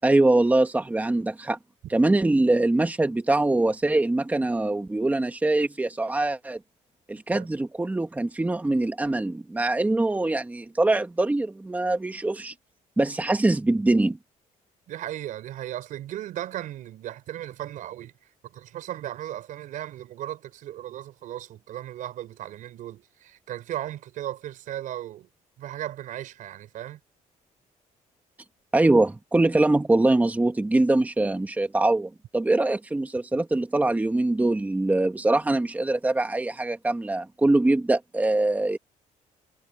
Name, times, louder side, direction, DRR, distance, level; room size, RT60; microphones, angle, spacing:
voice 1, 0.0-1.6 1.9-6.6 7.1-12.5 13.0-14.2 28.7-38.8, right 2 dB, 10° right, 1.7 m, -23 dB
voice 2, 14.9-18.1 18.4-25.3 25.6-27.0, right 12 dB, 75° right, 4.7 m, -36 dB
cardioid pair, 120°, 14 cm